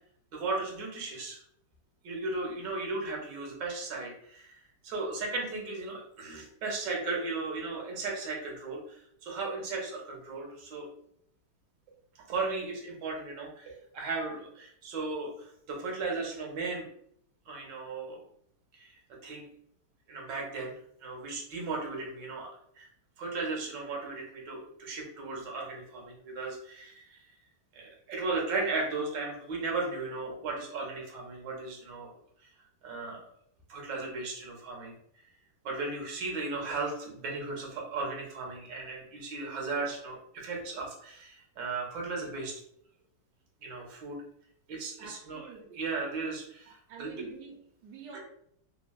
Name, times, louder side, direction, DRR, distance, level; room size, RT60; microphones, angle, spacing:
voice 1, 0.3-1.4 2.0-10.9 12.3-16.8 17.5-18.2 18.7-19.5 20.1-20.7 21.0-22.9 23.2-27.2 27.7-32.1 32.8-33.2 33.7-34.9 35.6-42.5 43.6-44.2 44.7-47.3 48.1-48.2, right 3 dB, 65° right, 1.2 m, -36 dB
voice 2, 45.0-45.8 46.7-48.2, right 6 dB, 80° right, 0.9 m, -48 dB
3.4 x 2.2 x 2.2 m
omnidirectional pair, 2.4 m